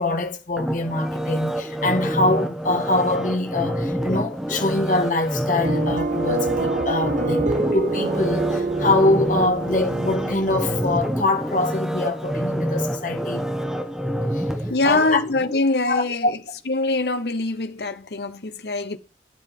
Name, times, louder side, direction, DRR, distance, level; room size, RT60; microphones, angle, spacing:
voice 1, 0.0-13.5 14.3-14.4 14.8-15.2 15.9-16.3, left 2 dB, 50° left, 1.7 m, -24 dB
sound 1, 0.6-15.6 16.0-16.2, equal, ahead, 1.1 m, -27 dB
sound 2, 5.6-11.0, right 3 dB, 45° right, 0.7 m, -26 dB
voice 2, 14.7-16.3 16.7-19.0, left 2 dB, 65° left, 1.0 m, -23 dB
12.0 x 9.8 x 3.7 m
head